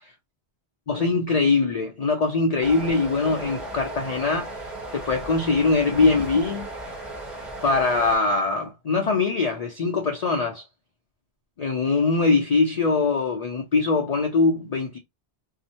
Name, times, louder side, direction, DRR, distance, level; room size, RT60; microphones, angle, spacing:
voice 1, 0.9-4.6 4.9-6.7 7.6-10.6 11.6-15.0, left 3 dB, 50° left, 0.5 m, -22 dB
sound 1, 2.6-8.2, right 2 dB, ahead, 0.8 m, -36 dB
2.8 x 2.1 x 2.7 m
omnidirectional pair, 1.1 m